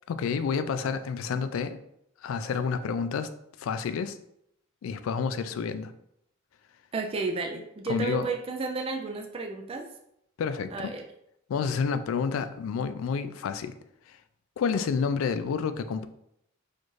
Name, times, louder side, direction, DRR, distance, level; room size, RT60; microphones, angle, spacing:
voice 1, 0.1-1.8 2.2-3.3 3.6-4.2 4.8-5.9 7.5-8.3 10.4-10.9 11.5-13.8 14.1-14.2 14.6-16.1, left 6 dB, 70° left, 11 dB, 0.3 m, -29 dB
voice 2, 6.9-9.9 10.7-11.0, right 3 dB, 25° right, 3 dB, 0.3 m, -32 dB
4.3 x 2.5 x 3.1 m, 0.76 s
head